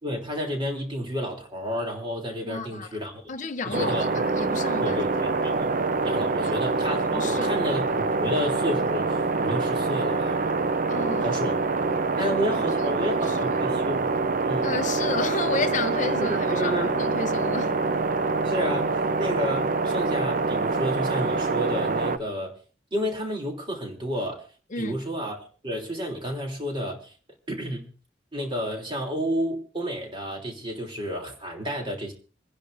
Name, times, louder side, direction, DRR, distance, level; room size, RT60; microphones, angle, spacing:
voice 1, 0.0-3.2 3.8-4.1 4.8-5.7 6.0-10.5 11.2-11.5 12.2-14.1 14.4-14.7 16.2-17.0 17.2-17.3 18.4-22.5 22.9-24.5 24.8-27.1 27.5-27.9 28.3-32.1, equal, 30° right, 3.1 m, -31 dB
voice 2, 2.4-3.0 3.3-5.1 6.4-6.5 7.1-7.6 10.9-11.4 12.3-12.6 12.8-12.9 13.2-13.5 14.6-17.8 24.7-25.0, left 4 dB, 45° left, 0.7 m, -32 dB
sound 1, 3.7-22.2, right 3 dB, 50° right, 0.6 m, -25 dB
27.0 x 10.5 x 2.6 m
head